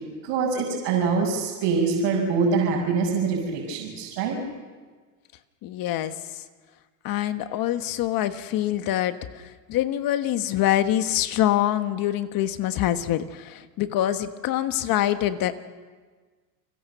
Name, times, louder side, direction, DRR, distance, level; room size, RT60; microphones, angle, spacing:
voice 1, 0.2-4.3, right 5 dB, 60° right, -4 dB, 6.5 m, -24 dB
voice 2, 5.6-6.1 7.0-9.4 9.7-15.6, left 12 dB, 45° left, 10 dB, 1.4 m, -25 dB
29.5 x 20.5 x 6.9 m, 1.4 s
supercardioid pair, 125°, 50 cm